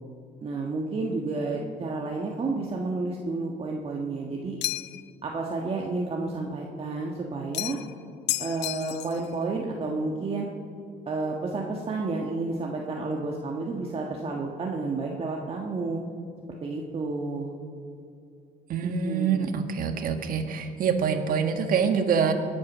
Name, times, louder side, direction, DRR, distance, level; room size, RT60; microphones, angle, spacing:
voice 1, 0.4-4.6 5.2-7.8 8.4-10.5 11.1-16.0 16.6-17.5 18.8-19.5, right 3 dB, 35° right, 0 dB, 1.5 m, -31 dB
sound 1, 4.6-5.1 7.5-7.9 8.3-9.3, left 17 dB, 85° left, 0.5 m, -31 dB
voice 2, 18.7-22.3, right 6 dB, 55° right, 6 dB, 1.6 m, -25 dB
22.0 x 8.7 x 6.2 m, 2.4 s
cardioid pair, 110°, 17 cm